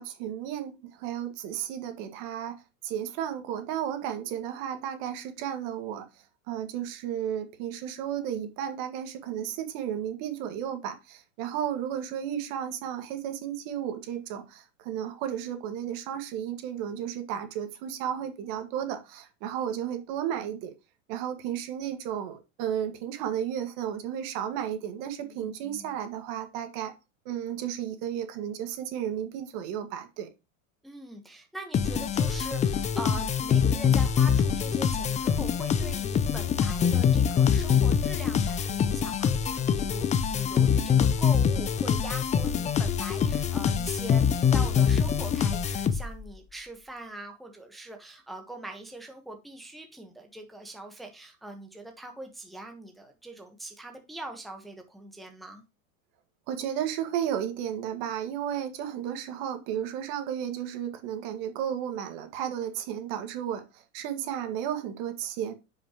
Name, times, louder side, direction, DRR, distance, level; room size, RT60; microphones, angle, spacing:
voice 1, 0.0-6.1 6.5-20.7 21.1-26.9 27.3-30.3 56.5-65.5, right 9 dB, 55° right, 1.8 m, -33 dB
voice 2, 25.2-25.9 30.8-55.6, right 2 dB, ahead, 1.2 m, -42 dB
sound 1, 31.7-46.3, left 7 dB, 20° left, 0.5 m, -24 dB
10.0 x 5.7 x 3.0 m
supercardioid pair, 120°, 40 cm